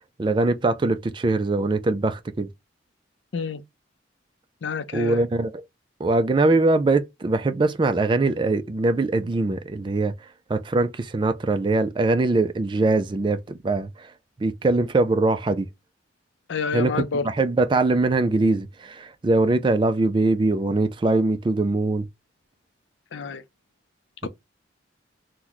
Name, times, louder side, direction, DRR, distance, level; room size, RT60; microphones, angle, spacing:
voice 1, 0.2-2.5 4.9-5.6 6.0-10.1 10.5-14.1 14.4-15.7 16.7-22.1, right 2 dB, 25° right, 0.3 m, -22 dB
voice 2, 4.6-5.3 16.5-17.3 23.1-23.4 24.2-24.3, left 5 dB, 75° left, 0.5 m, -28 dB
3.0 x 2.1 x 3.8 m
head